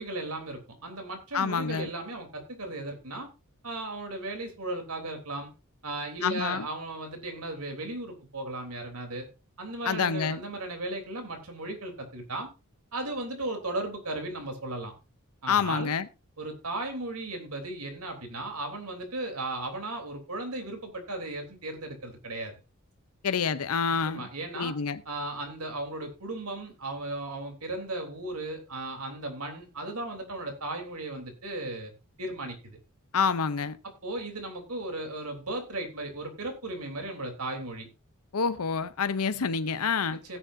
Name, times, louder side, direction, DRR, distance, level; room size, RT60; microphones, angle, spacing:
voice 1, 0.0-3.3 3.6-5.5 5.8-9.3 9.6-12.5 12.9-14.9 15.4-15.9 16.4-22.5 24.0-24.8 25.0-31.9 32.2-32.8 34.0-37.9 40.2-40.4, right 2 dB, 80° right, 3.4 m, -36 dB
voice 2, 1.3-1.9 6.2-6.7 9.8-10.4 15.5-16.1 23.2-24.3 24.5-25.0 33.1-33.8 38.3-40.2, left 5 dB, 75° left, 0.7 m, -27 dB
16.5 x 9.2 x 2.7 m
head